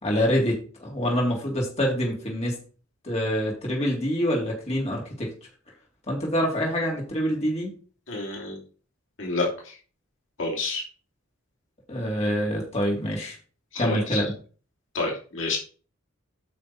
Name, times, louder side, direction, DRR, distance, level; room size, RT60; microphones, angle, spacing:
voice 1, 0.0-2.6 3.0-5.3 6.1-7.7 11.9-13.4 13.8-14.3, equal, 30° left, -3 dB, 3.5 m, -26 dB
voice 2, 8.1-8.6 9.2-9.8 10.4-10.8 13.7-14.2 14.9-15.6, left 3 dB, 65° left, -1 dB, 3.0 m, -29 dB
9.2 x 6.4 x 4.5 m, 0.38 s
head